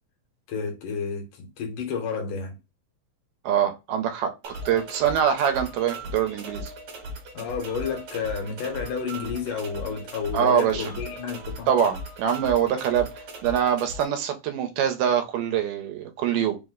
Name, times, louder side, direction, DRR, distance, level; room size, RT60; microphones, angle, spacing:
voice 1, 0.5-2.6 7.3-11.7, left 6 dB, 75° left, 2.4 m, -31 dB
voice 2, 3.5-6.7 10.3-10.9 11.7-13.1 13.4-16.6, right 9 dB, 85° right, 2.2 m, -24 dB
sound 1, 4.4-14.0, right 1 dB, 60° right, 1.6 m, -38 dB
5.3 x 2.1 x 3.5 m
omnidirectional pair, 3.9 m